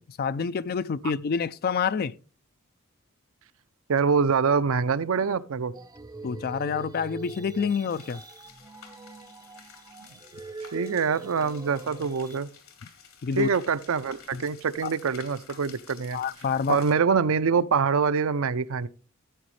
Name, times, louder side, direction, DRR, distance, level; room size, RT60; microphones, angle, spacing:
voice 1, 0.2-2.1 6.2-8.2 13.2-13.5 14.3-14.4 14.8-14.9 16.1-16.8, left 6 dB, 45° left, 0.4 m, -27 dB
voice 2, 3.9-5.7 10.7-12.5 13.4-16.2 16.7-18.9, right 5 dB, 65° right, 0.5 m, -25 dB
sound 1, 5.7-12.4, right 3 dB, 15° right, 0.5 m, -43 dB
sound 2, 7.9-16.9, left 7 dB, 75° left, 2.3 m, -51 dB
13.5 x 8.2 x 3.2 m
head